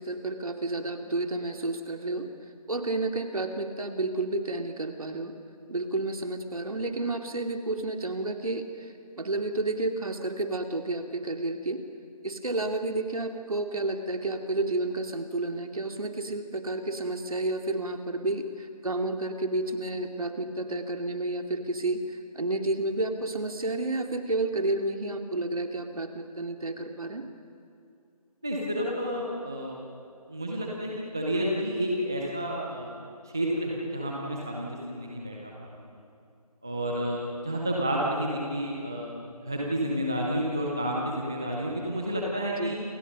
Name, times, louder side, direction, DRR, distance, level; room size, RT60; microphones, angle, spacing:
voice 1, 0.0-2.3 2.7-5.3 5.7-11.8 12.2-22.0 22.3-27.2 42.5-42.8, right 2 dB, 65° right, 4 dB, 2.7 m, -31 dB
voice 2, 28.4-29.8 30.3-32.9 33.3-35.8 36.6-42.7, equal, 5° right, -2 dB, 0.5 m, -30 dB
28.5 x 25.5 x 5.4 m, 2.5 s
figure-of-eight pair, 165°, 20 cm